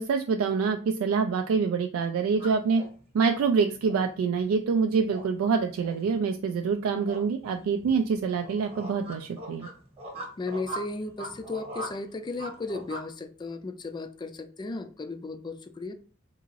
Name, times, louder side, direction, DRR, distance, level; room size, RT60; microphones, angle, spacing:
voice 1, 0.0-2.8 3.1-9.7, right 5 dB, 80° right, 5 dB, 0.3 m, -26 dB
sound 1, 2.3-13.1, right 1 dB, 30° right, 1.0 m, -42 dB
voice 2, 10.4-15.9, left 3 dB, 20° left, 9 dB, 0.3 m, -35 dB
3.6 x 2.5 x 3.1 m, 0.41 s
head